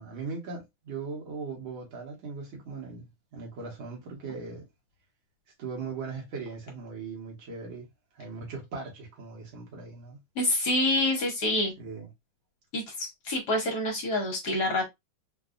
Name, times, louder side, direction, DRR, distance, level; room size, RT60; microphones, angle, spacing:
voice 1, 0.0-4.7 5.6-7.9 8.2-10.2 11.8-12.1, right 4 dB, 70° right, 2.0 m, -39 dB
voice 2, 10.4-11.7 12.7-14.9, left 1 dB, 60° left, 1.3 m, -27 dB
4.0 x 2.3 x 2.4 m
omnidirectional pair, 2.3 m